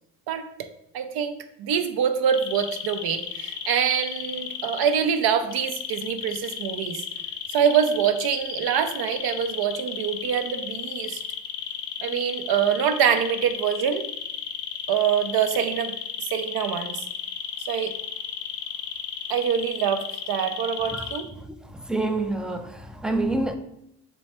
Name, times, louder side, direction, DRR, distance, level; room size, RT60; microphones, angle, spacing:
voice 1, 0.3-0.7 0.9-1.3 1.6-7.0 7.5-11.2 12.0-14.0 14.9-15.9 16.2-17.0 17.7-17.9 19.3-21.3, right 8 dB, 60° right, 0.6 m, -25 dB
sound 1, 2.3-5.0 5.5-21.2, left 8 dB, 70° left, 0.6 m, -33 dB
voice 2, 21.5-23.6, right 2 dB, ahead, 0.4 m, -27 dB
3.3 x 3.1 x 4.3 m
hypercardioid pair, 50°, 43 cm